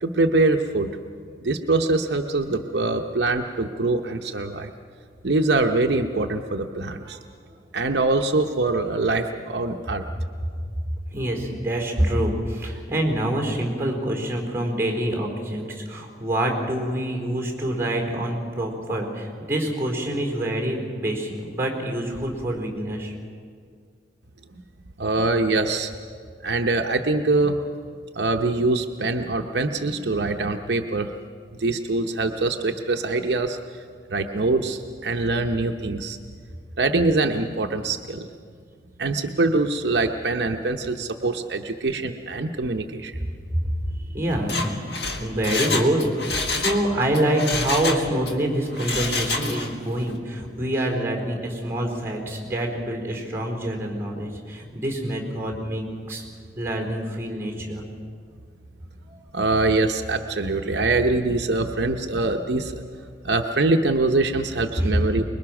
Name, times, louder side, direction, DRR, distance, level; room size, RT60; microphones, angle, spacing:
voice 1, 0.0-0.9 1.4-4.7 5.2-7.2 7.7-10.1 25.0-25.9 26.4-27.7 28.1-31.1 31.6-33.6 34.1-36.2 36.8-38.3 39.0-43.1 59.3-62.8 63.2-65.2, right 2 dB, 70° right, 4 dB, 0.8 m, -23 dB
voice 2, 11.1-23.1 44.1-44.8 45.2-56.2 56.6-57.9 59.1-59.2 64.8-65.2, right 1 dB, 15° right, 1 dB, 4.3 m, -26 dB
Mechanisms, 44.3-46.8 47.1-48.3 48.7-49.8 50.1-50.2, left 3 dB, 65° left, 1.8 m, -28 dB
24.5 x 21.5 x 6.0 m, 2.1 s
head